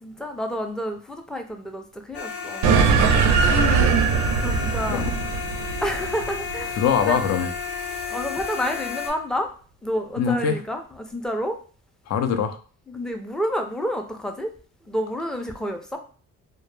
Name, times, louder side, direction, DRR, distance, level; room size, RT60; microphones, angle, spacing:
voice 1, 0.0-2.7 4.4-5.1 5.8-7.2 8.1-9.5 9.8-11.6 12.9-14.5 14.8-16.0, equal, ahead, 4 dB, 0.4 m, -29 dB
sound 1, 2.1-9.1, left 6 dB, 80° left, 0.8 m, -32 dB
sound 2, 2.6-7.4, right 5 dB, 85° right, 0.5 m, -21 dB
voice 2, 3.5-4.1 4.9-5.1 6.8-7.5 10.2-10.6 12.1-12.6, left 7 dB, 60° left, 8 dB, 0.5 m, -23 dB
2.1 x 2.0 x 3.1 m, 0.41 s
cardioid pair, 90°, 30 cm